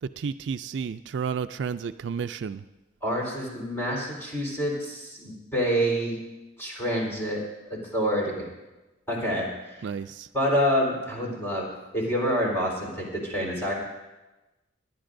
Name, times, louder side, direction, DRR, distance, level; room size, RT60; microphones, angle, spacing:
voice 1, 0.0-2.6 9.8-10.3, right 6 dB, 65° right, 11 dB, 0.3 m, -32 dB
voice 2, 3.0-6.2 6.6-7.4 7.7-8.5 9.1-9.8 10.3-13.7, equal, 15° left, -4 dB, 3.9 m, -27 dB
26.5 x 10.5 x 2.6 m, 1.1 s
head